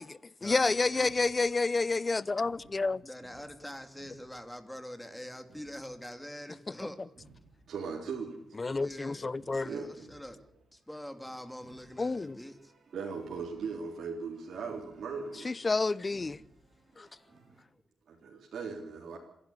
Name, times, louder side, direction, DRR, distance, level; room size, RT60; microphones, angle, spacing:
voice 1, 0.0-3.0 8.6-9.7 12.0-12.4 15.4-16.4 17.0-17.1, left 3 dB, 30° left, 0.7 m, -29 dB
sound 1, 0.6-17.6, right 3 dB, 50° right, 4.8 m, -61 dB
voice 2, 3.0-7.0 8.8-9.3 9.6-10.4 10.7-12.7, equal, 5° left, 2.9 m, -44 dB
voice 3, 7.7-8.4 9.6-10.1 12.9-15.5 18.1-19.2, right 5 dB, 70° right, 3.8 m, -38 dB
27.0 x 11.0 x 9.9 m
cardioid pair, 75°, 0 cm